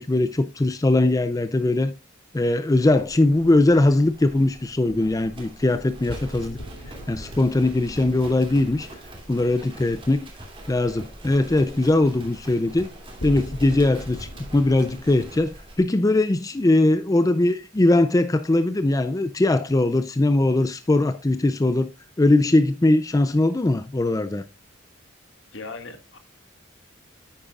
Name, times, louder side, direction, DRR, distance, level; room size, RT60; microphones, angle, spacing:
voice 1, 0.0-1.9 2.3-6.6 7.1-8.9 9.3-10.3 10.7-12.9 13.2-21.9 22.2-24.4, left 2 dB, 15° left, 0.4 m, -20 dB
Livestock farm animals working animals, 2.8-15.8, right 1 dB, 25° right, 2.6 m, -43 dB
sound 1, 6.1-10.4 13.2-15.0, equal, 85° left, 2.2 m, -40 dB
voice 2, 25.5-26.2, left 3 dB, 70° left, 1.6 m, -38 dB
10.0 x 8.7 x 2.4 m
head